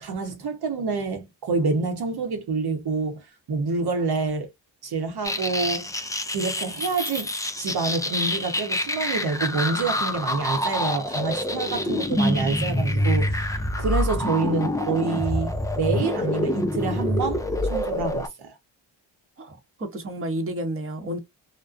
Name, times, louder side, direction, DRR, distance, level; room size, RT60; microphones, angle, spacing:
voice 1, 0.0-4.5 4.8-5.9 6.3-18.6, right 4 dB, 55° right, 0.8 m, -27 dB
sound 1, 5.2-18.3, left 1 dB, 10° left, 0.4 m, -26 dB
voice 2, 19.4-21.2, right 1 dB, 30° right, 0.9 m, -31 dB
2.4 x 2.2 x 2.4 m
supercardioid pair, 55°, 46 cm